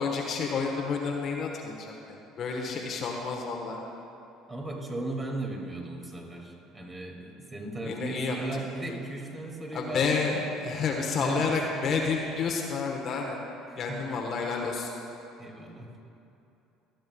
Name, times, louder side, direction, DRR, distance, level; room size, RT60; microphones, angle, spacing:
voice 1, 0.0-3.8 7.9-8.4 9.7-13.4 13.8-14.9, left 5 dB, 50° left, 0 dB, 1.2 m, -30 dB
voice 2, 4.5-10.4 11.2-11.5 13.7-14.0 15.4-15.9, right 2 dB, 25° right, 0 dB, 2.5 m, -36 dB
25.5 x 9.2 x 2.3 m, 2.8 s
hypercardioid pair, 60°, 0 cm